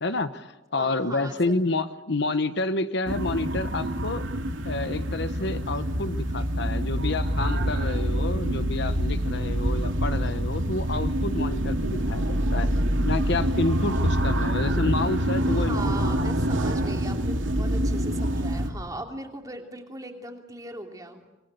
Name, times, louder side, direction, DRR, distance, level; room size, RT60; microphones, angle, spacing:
voice 1, 0.0-4.3 4.6-12.7 13.1-16.3, left 2 dB, 60° left, 11 dB, 1.0 m, -29 dB
voice 2, 0.7-1.7 15.5-21.2, right 2 dB, 20° right, 3 dB, 3.0 m, -39 dB
sound 1, 3.1-18.7, equal, 75° right, 2.5 m, -26 dB
26.5 x 20.0 x 8.3 m, 1.0 s
head